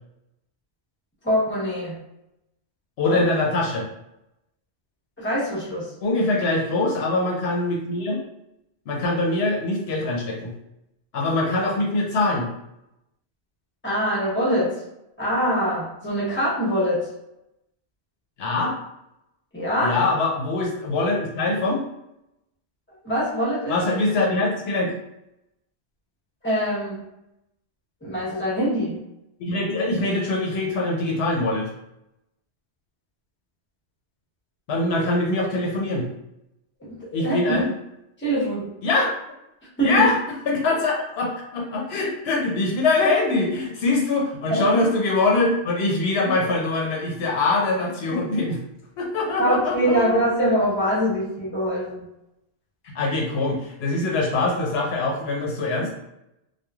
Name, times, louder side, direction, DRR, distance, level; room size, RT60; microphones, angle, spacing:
voice 1, 1.2-2.0 5.2-5.8 13.8-14.7 15.2-17.0 19.5-20.0 23.0-23.8 26.4-27.0 28.0-28.9 36.8-37.6 38.2-38.7 39.8-40.0 49.4-52.0, equal, 10° left, -7 dB, 0.9 m, -23 dB
voice 2, 3.0-3.9 6.0-8.2 8.9-10.5 11.1-12.5 18.4-18.8 19.8-21.8 23.7-24.9 29.4-31.7 34.7-36.1 37.1-37.7 38.8-39.1 39.8-40.2 40.5-48.6 49.0-50.2 52.8-55.9, left 2 dB, 75° left, -2 dB, 0.8 m, -23 dB
3.0 x 2.2 x 2.3 m, 0.86 s
omnidirectional pair, 1.1 m